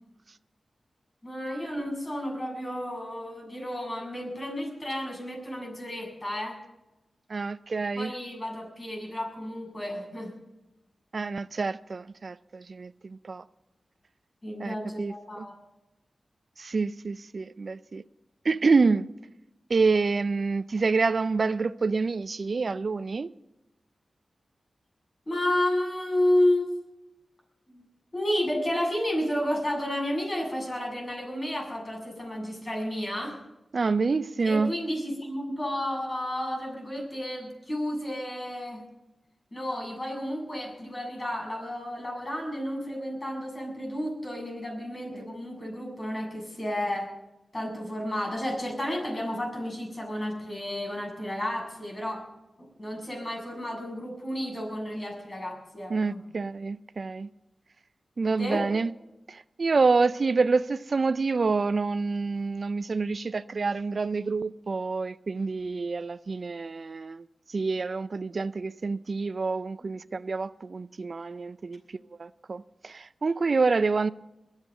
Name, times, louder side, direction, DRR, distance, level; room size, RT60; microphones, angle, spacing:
voice 1, 1.2-6.6 8.0-10.3 14.4-15.6 25.3-26.7 27.7-27.8 28.1-33.4 34.4-38.8 39.5-47.1 47.5-52.2 52.6-56.2 58.4-58.6 69.8-69.9, left 1 dB, 40° left, 7.4 m, -31 dB
voice 2, 7.3-8.1 11.1-13.4 14.6-15.5 16.6-18.0 18.4-19.1 19.7-23.3 33.7-34.7 45.1-45.2 55.9-57.3 58.2-58.9 59.3-74.1, right 4 dB, 60° right, 0.4 m, -27 dB
22.0 x 8.2 x 6.7 m
cardioid pair, 50°, 0 cm